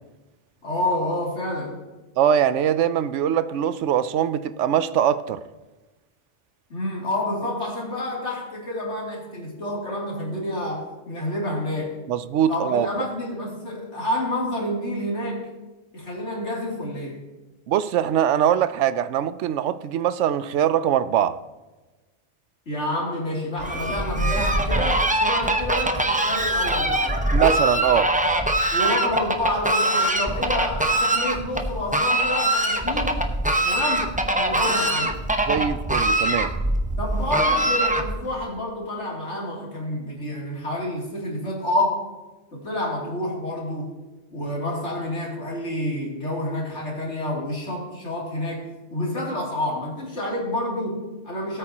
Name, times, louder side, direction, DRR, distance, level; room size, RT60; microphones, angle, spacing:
voice 1, 0.6-1.8 6.7-12.0 12.5-15.5 15.9-17.2 22.7-27.2 28.7-33.2 33.6-35.2 37.0-42.0 42.5-43.9 44.3-51.6, left 1 dB, 75° left, 3.3 m, -28 dB
voice 2, 2.2-5.4 12.1-12.9 17.7-21.4 27.3-28.1 34.7-34.8 35.5-36.5, right 9 dB, 90° right, 0.9 m, -22 dB
Fowl, 23.6-38.3, right 1 dB, 10° right, 0.7 m, -23 dB
18.0 x 8.7 x 2.9 m
omnidirectional pair, 1.2 m